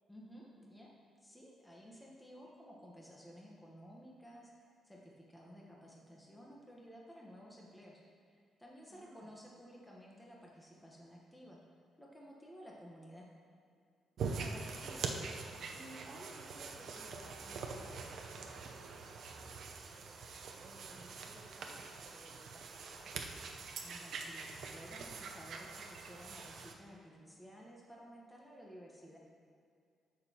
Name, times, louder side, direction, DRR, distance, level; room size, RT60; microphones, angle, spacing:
voice 1, 0.1-0.9 1.2-11.6 12.0-13.3 23.8-29.2, equal, 5° left, -3 dB, 1.2 m, -55 dB
voice 2, 8.9-9.3 14.3-15.3 15.7-19.5 19.8-20.3 20.6-23.2, right 1 dB, 25° right, -6 dB, 1.1 m, -56 dB
sound 1, 14.2-26.7, right 4 dB, 65° right, 0.7 m, -44 dB
13.5 x 6.4 x 2.9 m, 2.3 s
cardioid pair, 120°, 0 cm